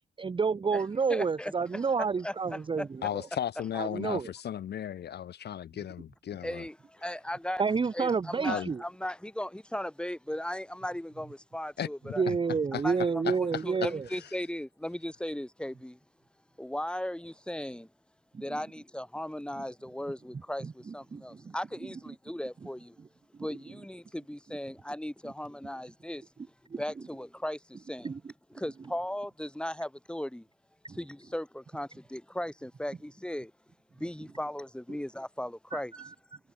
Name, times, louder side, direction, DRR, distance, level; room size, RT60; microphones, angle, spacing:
voice 1, 0.2-3.3 3.7-4.3 7.6-8.8 12.2-14.1 18.3-18.6 20.6-21.5 21.8-21.9 26.7-26.8 28.0-28.2 30.8-31.0 35.7-36.1, right 5 dB, 25° right, 0.8 m, -30 dB
voice 2, 1.1-1.5 2.2-2.9 6.4-7.6 7.9-12.2 12.8-16.0 16.6-17.9 18.4-23.0 23.4-26.2 26.8-28.1 28.5-30.5 31.0-33.5 34.0-36.0, left 1 dB, 5° left, 6.2 m, -37 dB
voice 3, 3.0-6.6 8.5-8.7 11.8-11.9 12.3-12.4 12.7-12.8 13.2-14.3, left 10 dB, 55° left, 1.0 m, -35 dB
cardioid pair, 90°, 20 cm